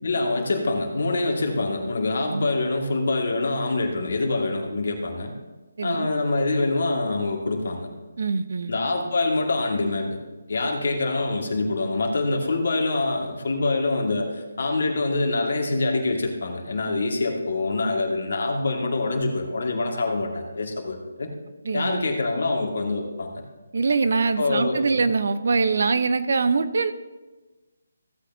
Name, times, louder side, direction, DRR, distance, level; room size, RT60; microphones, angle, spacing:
voice 1, 0.0-5.3 5.8-7.9 8.7-10.2 10.5-21.3 21.7-23.3 24.4-24.8, left 2 dB, 60° left, 1 dB, 2.0 m, -25 dB
voice 2, 5.8-6.1 8.2-8.7 21.6-22.1 23.7-26.9, right 4 dB, 60° right, 11 dB, 0.7 m, -23 dB
15.5 x 8.5 x 2.8 m, 1.2 s
figure-of-eight pair, 155°, 0 cm